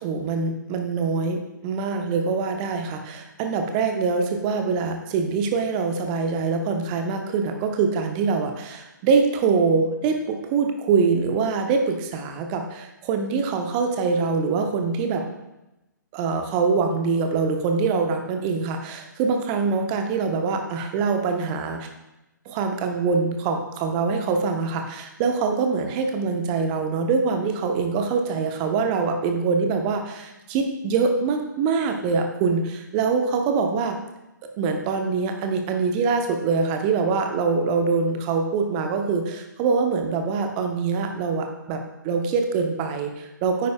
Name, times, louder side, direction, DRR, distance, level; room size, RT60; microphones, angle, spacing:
voice 1, 0.0-15.2 16.1-21.9 22.5-34.0 34.6-43.7, right 5 dB, 25° right, 4 dB, 0.9 m, -24 dB
9.5 x 9.4 x 2.3 m, 0.97 s
figure-of-eight pair, 130°, 11 cm